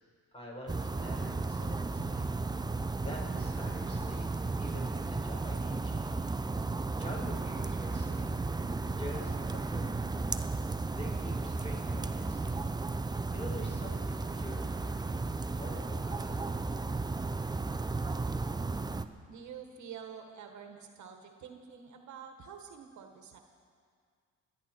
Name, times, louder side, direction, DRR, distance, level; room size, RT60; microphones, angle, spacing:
voice 1, 0.3-2.3 2.7-4.3 4.6-6.2 7.0-8.4 8.9-10.0 10.9-12.5 13.3-15.1 15.5-16.6, left 1 dB, 20° left, -1 dB, 4.6 m, -46 dB
sound 1, 0.7-19.1, right 3 dB, 15° right, 0.6 m, -34 dB
voice 2, 19.3-23.4, right 7 dB, 70° right, 5 dB, 1.4 m, -47 dB
29.0 x 10.0 x 4.5 m, 2.1 s
cardioid pair, 90°, 30 cm